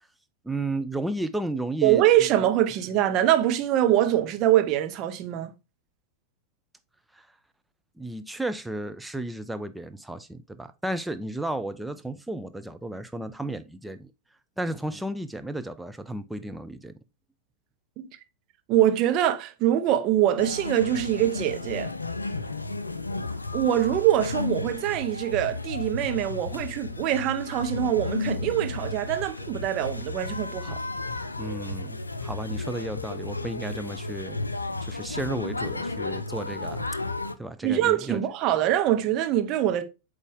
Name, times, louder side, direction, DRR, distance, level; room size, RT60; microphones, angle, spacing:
voice 1, 0.4-2.3 7.1-7.3 8.0-14.1 14.6-16.9 31.4-34.4 34.8-36.9 37.4-38.2, right 1 dB, 5° right, 0.6 m, -33 dB
voice 2, 1.8-5.5 18.0-18.1 18.7-21.9 23.5-30.8 37.6-39.8, right 12 dB, 40° right, 0.8 m, -24 dB
sound 1, 20.4-37.3, left 3 dB, 80° left, 0.4 m, -33 dB
8.2 x 3.4 x 3.6 m
figure-of-eight pair, 90°, 0 cm